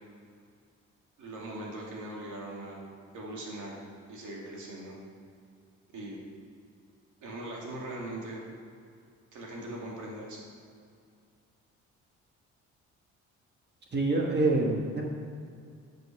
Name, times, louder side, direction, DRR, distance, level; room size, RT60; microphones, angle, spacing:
voice 1, 1.2-2.9 3.1-3.8 4.1-5.0 5.9-6.2 7.2-8.4 9.3-10.4, right 1 dB, 75° right, -3 dB, 2.6 m, -40 dB
voice 2, 13.9-15.0, right 2 dB, 35° right, -1 dB, 1.5 m, -26 dB
8.0 x 6.5 x 6.0 m, 2.3 s
cardioid pair, 90°, 30 cm